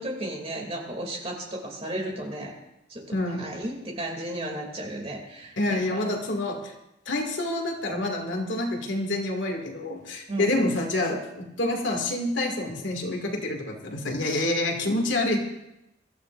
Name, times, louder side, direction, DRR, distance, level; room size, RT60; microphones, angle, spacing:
voice 1, 0.0-2.5 2.9-3.0 3.4-6.0 10.3-10.5, right 1 dB, 30° right, 0 dB, 2.8 m, -34 dB
voice 2, 3.1-3.5 5.6-6.7 7.1-15.4, left 1 dB, 75° left, 1 dB, 2.4 m, -27 dB
23.5 x 13.5 x 2.6 m, 0.88 s
head